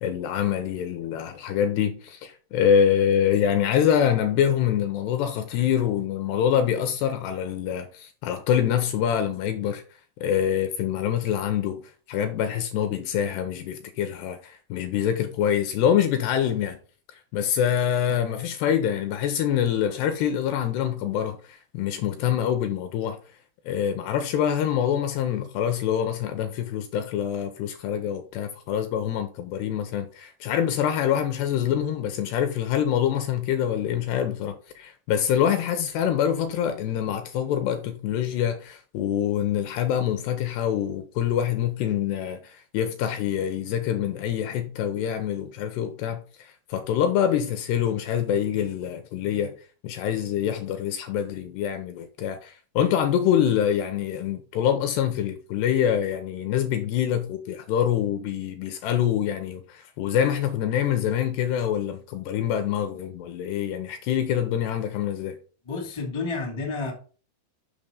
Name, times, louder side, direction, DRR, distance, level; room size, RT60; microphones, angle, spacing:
voice 1, 0.0-9.8 10.2-16.8 17.1-23.2 23.7-49.6 49.8-65.4, left 9 dB, 80° left, 2.5 m, -25 dB
voice 2, 65.6-66.9, left 4 dB, 35° left, 0.4 m, -30 dB
7.3 x 5.9 x 5.1 m
omnidirectional pair, 5.4 m